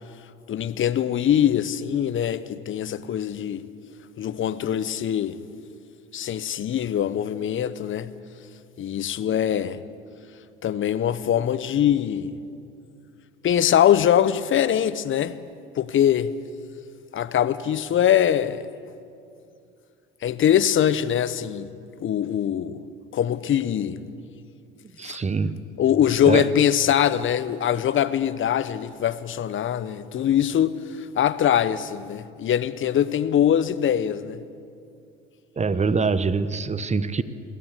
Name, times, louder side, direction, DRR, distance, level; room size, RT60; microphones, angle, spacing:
voice 1, 0.5-3.6 4.2-5.3 6.1-8.1 8.8-9.8 10.6-12.3 13.4-15.4 15.8-16.3 17.1-18.7 20.2-21.7 22.0-22.8 23.1-24.0 25.0-25.2 25.8-34.4, left 10 dB, 40° left, 1.0 m, -22 dB
voice 2, 25.0-25.6 26.2-26.5 35.6-37.2, right 4 dB, 20° right, 1.1 m, -24 dB
22.0 x 16.5 x 8.4 m
hypercardioid pair, 75°, 31 cm